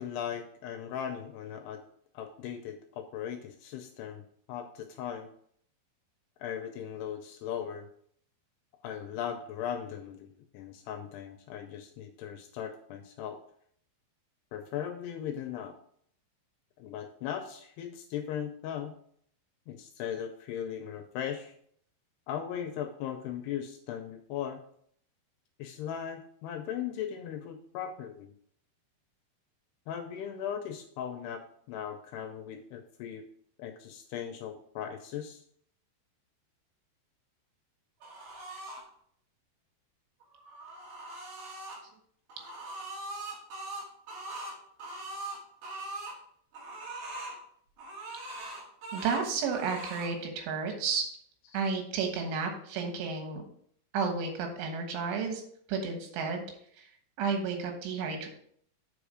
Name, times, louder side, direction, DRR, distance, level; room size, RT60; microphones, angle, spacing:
voice 1, 0.0-1.8 2.1-4.2 4.5-5.3 6.4-7.9 8.8-13.4 14.5-15.7 16.8-18.9 19.7-21.5 22.3-24.6 25.6-28.3 29.9-33.2 33.6-35.4, left 9 dB, 80° left, 6 dB, 2.4 m, -38 dB
sound 1, 38.0-38.8 40.2-41.8 42.3-46.2 46.5-47.4 47.8-49.2 49.5-50.1, right 2 dB, 60° right, 3.8 m, -41 dB
voice 2, 48.9-51.1 51.5-53.4 53.9-55.4 55.7-56.5 56.8-56.9 57.2-58.3, right 5 dB, 90° right, 4 dB, 3.8 m, -32 dB
8.0 x 5.0 x 4.9 m, 0.64 s
omnidirectional pair, 5.3 m